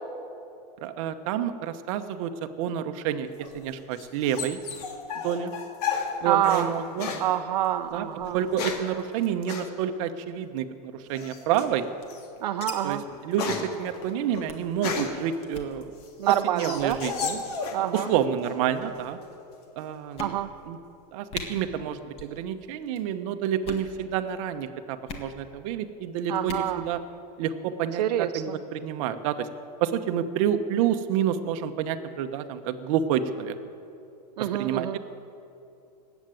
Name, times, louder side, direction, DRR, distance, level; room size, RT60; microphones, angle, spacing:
voice 1, 0.8-4.6 5.2-5.5 6.2-7.1 7.9-8.1 8.3-11.9 12.8-15.9 16.3-17.4 17.9-19.2 19.8-20.2 20.6-20.8 21.1-27.0 27.4-29.5 29.8-33.5 34.4-35.0, right 9 dB, 55° right, 8 dB, 1.0 m, -29 dB
sound 1, 3.4-6.7 7.0-7.3 8.2-8.9 9.5-9.7 11.2-11.6 12.1-12.3 12.7-15.3 15.8-18.2 18.4-19.0, left 5 dB, 70° left, 2.3 m, -33 dB
voice 2, 6.2-6.7 7.2-8.4 12.4-13.0 16.2-17.0 17.7-18.1 20.2-20.5 26.3-26.8 28.0-28.3 34.4-35.0, right 12 dB, 85° right, 7 dB, 0.8 m, -26 dB
sound 2, 11.4-12.7 13.0-13.1 13.3-13.5 13.9-14.1 14.5-14.7 15.4-15.7 16.3-16.5 16.8-17.1 18.0-18.4 19.1-19.2 19.6-19.7 20.2-20.7 21.0-21.1 21.3-21.5 22.1-22.4 22.6-23.0 23.5-23.9 25.1-25.3 26.3-26.7, left 4 dB, 30° left, 1.5 m, -40 dB
19.5 x 8.2 x 9.1 m, 2.8 s
supercardioid pair, 155°, 21 cm